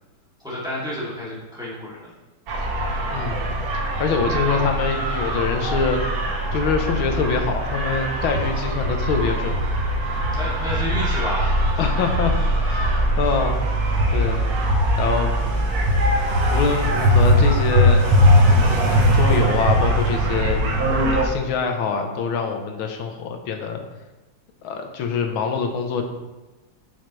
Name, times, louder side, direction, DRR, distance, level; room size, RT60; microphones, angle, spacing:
voice 1, 0.4-2.1 10.3-11.9 13.2-13.4, left 1 dB, ahead, -9 dB, 2.4 m, -31 dB
sound 1, 2.5-21.2, equal, 55° right, 1.4 m, -20 dB
voice 2, 3.1-3.6 4.0-6.0 6.5-9.6 11.8-13.6 14.1-14.4 15.0-15.3 16.5-18.0 18.7-20.6 21.1-23.8 24.6-26.0, left 5 dB, 85° left, 4 dB, 1.8 m, -24 dB
8.2 x 6.4 x 3.2 m, 1.1 s
omnidirectional pair, 2.2 m